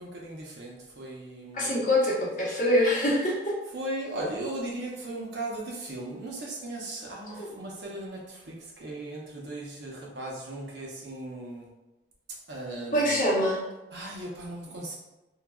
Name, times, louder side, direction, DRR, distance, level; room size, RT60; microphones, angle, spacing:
voice 1, 0.0-1.8 3.7-11.7 12.5-13.2 13.9-15.0, right 1 dB, 65° right, -3 dB, 0.7 m, -37 dB
voice 2, 1.5-3.5 7.3-7.5 12.9-13.6, left 1 dB, 45° left, -6 dB, 0.9 m, -24 dB
3.1 x 2.3 x 2.3 m, 1.0 s
head